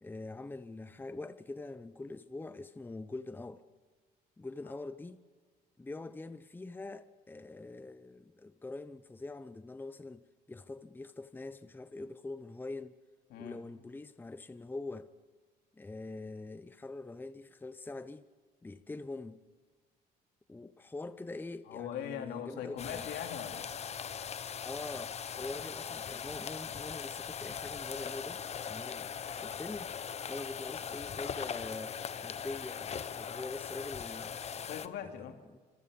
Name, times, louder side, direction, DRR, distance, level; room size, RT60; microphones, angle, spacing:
voice 1, 0.0-3.6 4.4-5.2 5.8-12.9 13.4-15.1 15.7-18.2 18.6-19.5 20.5-23.0 24.6-28.4 28.7-29.1 29.4-29.9 30.3-34.4 35.0-35.2 35.5-35.6, left 2 dB, 10° left, 0.9 m, -44 dB
voice 2, 21.7-23.7 34.6-35.4, left 9 dB, 80° left, 3.0 m, -41 dB
sound 1, 22.8-34.9, left 7 dB, 40° left, 1.0 m, -40 dB
26.0 x 23.5 x 5.4 m
cardioid pair, 110°, 17 cm